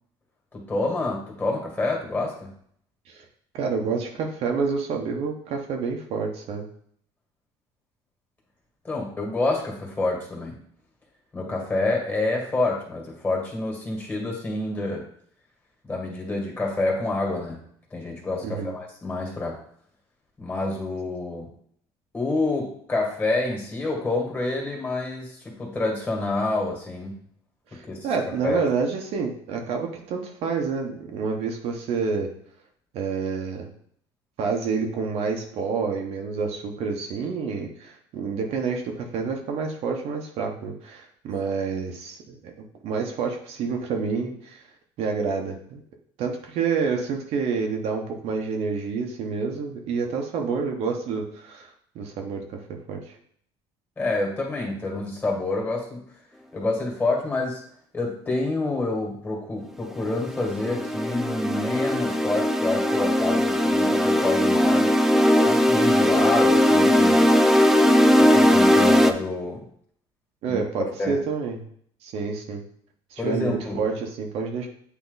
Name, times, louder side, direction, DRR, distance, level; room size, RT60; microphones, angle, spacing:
voice 1, 0.5-2.5 8.8-10.6 11.3-15.1 15.8-19.6 20.4-21.5 22.1-27.3 27.7-28.1 28.4-28.6 54.0-56.1 56.5-57.6 57.9-64.9 65.5-67.4 68.2-69.7 70.5-70.6 71.0-71.1 73.2-73.8, left 2 dB, 15° left, -1 dB, 2.0 m, -28 dB
voice 2, 3.5-6.6 18.4-18.7 27.7-32.3 32.9-33.7 34.4-42.5 42.8-44.6 45.0-45.8 46.2-51.7 51.9-53.0 70.4-71.6 72.0-72.6 73.1-74.7, right 5 dB, 65° right, 2 dB, 1.1 m, -28 dB
sound 1, 60.0-69.1, left 1 dB, 5° right, 0.4 m, -19 dB
8.3 x 3.0 x 4.0 m, 0.63 s
cardioid pair, 120°, 12 cm